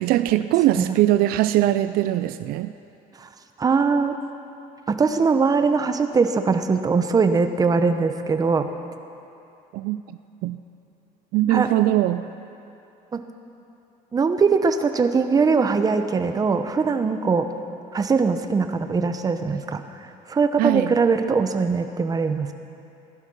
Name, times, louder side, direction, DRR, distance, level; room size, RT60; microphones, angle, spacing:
voice 1, 0.0-2.7 9.7-10.0 10.4-10.6 11.3-12.3 20.6-20.9, right 14 dB, 75° right, 12 dB, 0.4 m, -21 dB
voice 2, 3.6-4.2 4.9-8.7 11.5-11.7 13.1-13.2 14.1-17.5 17.9-19.8 20.3-22.5, right 4 dB, 25° right, 8 dB, 0.8 m, -21 dB
15.5 x 11.5 x 6.2 m, 2.8 s
cardioid pair, 125°, 15 cm